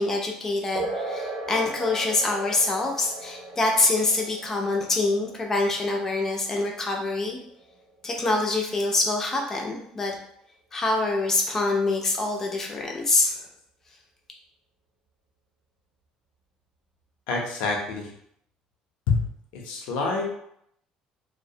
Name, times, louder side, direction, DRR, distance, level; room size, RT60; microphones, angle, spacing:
voice 1, 0.0-7.4 8.0-10.2 10.7-13.4, left 2 dB, 20° left, 1 dB, 0.4 m, -25 dB
sound 1, 0.7-8.8, right 2 dB, 40° right, 0.5 m, -38 dB
voice 2, 17.3-18.1 19.1-19.2 19.5-20.3, left 4 dB, 90° left, 0 dB, 0.6 m, -26 dB
2.4 x 2.1 x 2.7 m, 0.72 s
cardioid pair, 155°, 2 cm